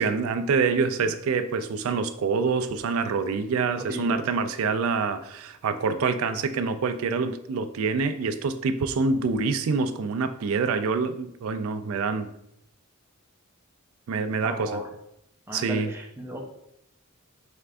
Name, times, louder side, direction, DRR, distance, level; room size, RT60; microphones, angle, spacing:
voice 1, 0.0-12.3 14.1-14.8 15.5-15.9, right 4 dB, 65° right, 10 dB, 0.3 m, -26 dB
voice 2, 3.7-4.2 14.4-14.8 15.5-16.4, equal, 10° right, -1 dB, 0.6 m, -35 dB
4.3 x 3.4 x 2.5 m, 0.77 s
head